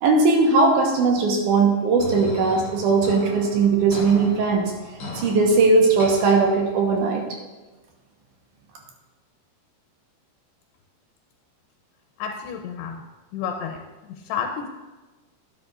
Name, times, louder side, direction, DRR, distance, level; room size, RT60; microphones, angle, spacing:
voice 1, 0.0-4.7 5.1-7.2, right 4 dB, 70° right, 1 dB, 2.1 m, -19 dB
sound 1, 2.0-7.0, left 2 dB, 40° left, 2.9 m, -37 dB
voice 2, 12.2-13.0 13.3-13.8 14.1-14.7, left 7 dB, 85° left, 3 dB, 2.8 m, -30 dB
12.0 x 10.0 x 2.5 m, 1.2 s
omnidirectional pair, 4.7 m